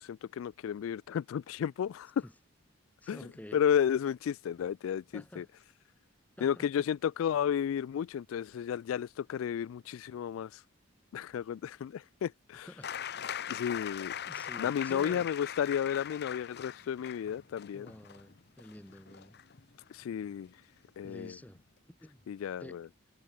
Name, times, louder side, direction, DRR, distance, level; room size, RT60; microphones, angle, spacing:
voice 1, 0.0-2.3 3.1-3.2 3.5-5.4 6.4-10.6 11.1-12.7 13.5-14.1 14.6-17.9 19.9-20.5 21.0-21.4 22.3-22.9, left 8 dB, 80° left, 0.3 m, -32 dB
voice 2, 3.0-3.6 5.1-5.5 6.4-6.7 12.7-13.0 14.3-15.3 17.7-19.4 21.0-21.6 22.0-22.2 22.6-22.8, left 1 dB, 10° left, 1.0 m, -49 dB
sound 1, 12.8-20.4 21.6-21.7, left 9 dB, 55° left, 0.8 m, -41 dB
head